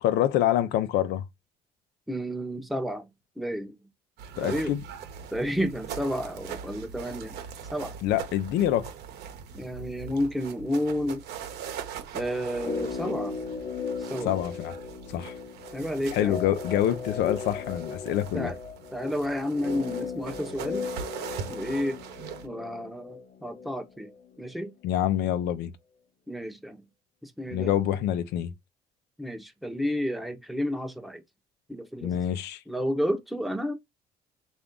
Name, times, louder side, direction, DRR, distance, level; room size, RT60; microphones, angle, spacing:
voice 1, 0.0-1.3 4.4-4.8 8.0-8.9 14.2-14.8 15.1-15.3 16.1-18.5 24.8-25.7 27.5-28.5 32.0-32.6, left 11 dB, 85° left, 0.6 m, -26 dB
voice 2, 2.1-3.1 3.4-3.7 4.4-4.7 5.3-7.4 7.7-7.9 9.5-11.2 12.1-13.4 14.0-14.4 15.7-16.4 18.3-18.6 18.9-20.9 21.5-22.0 22.4-24.1 24.4-24.7 26.3-26.8 27.2-27.7 29.2-31.2 31.7-32.2 32.7-33.7, equal, ahead, 0.8 m, -31 dB
sound 1, 4.2-22.5, right 7 dB, 75° right, 0.9 m, -41 dB
sound 2, 12.5-24.7 24.9-25.0, left 5 dB, 45° left, 0.9 m, -37 dB
3.5 x 2.6 x 3.7 m
cardioid pair, 110°, 17 cm